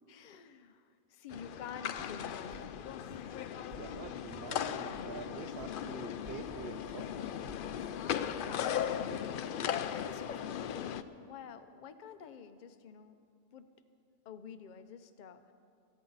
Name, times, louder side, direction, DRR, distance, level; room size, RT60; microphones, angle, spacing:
voice 1, 0.0-3.2 7.7-13.2 13.5-13.7 14.2-15.5, left 7 dB, 45° left, 9 dB, 0.7 m, -48 dB
sound 1, 1.3-11.0, left 9 dB, 85° left, 0.4 m, -38 dB
sound 2, 2.0-2.1 2.5-2.7 3.1-3.3 3.7-3.9 4.3-4.5 4.9-5.1 5.6-5.7 6.1-6.4 6.9-7.0 7.5-7.7 8.1-8.2, equal, 40° right, 1.4 m, -53 dB
voice 2, 3.7-7.4, right 8 dB, 60° right, 8 dB, 0.6 m, -46 dB
27.5 x 9.4 x 4.0 m, 2.3 s
omnidirectional pair, 1.4 m